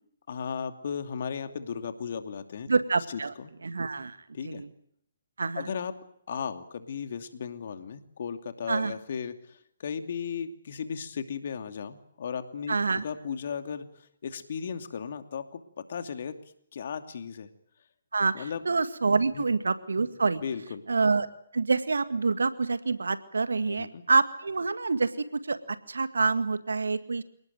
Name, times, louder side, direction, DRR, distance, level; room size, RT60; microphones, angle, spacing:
voice 1, 0.3-2.7 3.1-3.5 4.3-4.6 5.5-5.9 6.3-13.9 14.2-15.6 15.9-16.4 16.7-17.5 18.3-18.6 19.3-19.5 20.4-20.8 23.7-24.0, left 6 dB, 55° left, 8 dB, 2.7 m, -36 dB
voice 2, 2.7-3.3 3.6-4.2 4.4-4.7 5.4-5.7 8.7-8.9 12.7-13.0 18.1-20.4 20.9-21.3 21.5-27.2, right 4 dB, 70° right, 11 dB, 2.0 m, -27 dB
28.5 x 19.0 x 9.4 m, 0.71 s
figure-of-eight pair, 130°, 0 cm